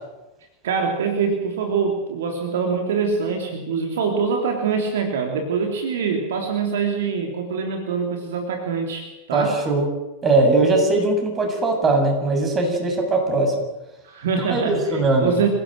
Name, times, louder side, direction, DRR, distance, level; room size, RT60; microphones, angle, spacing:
voice 1, 0.6-9.6 14.0-15.5, right 5 dB, 60° right, 3 dB, 3.5 m, -24 dB
voice 2, 9.3-9.9 10.2-13.5 14.5-15.3, right 2 dB, 20° right, 3 dB, 7.6 m, -20 dB
27.5 x 17.0 x 7.9 m, 1.0 s
figure-of-eight pair, 90°, 0 cm